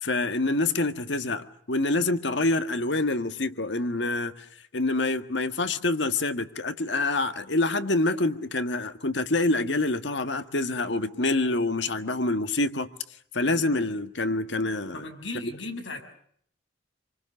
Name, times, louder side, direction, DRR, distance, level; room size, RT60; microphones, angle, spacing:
voice 1, 0.0-4.5 4.7-12.9 13.3-15.1 15.4-15.5, left 2 dB, 70° left, 1.7 m, -26 dB
voice 2, 14.9-16.0, left 2 dB, 90° left, 6.1 m, -36 dB
28.0 x 25.0 x 7.1 m
head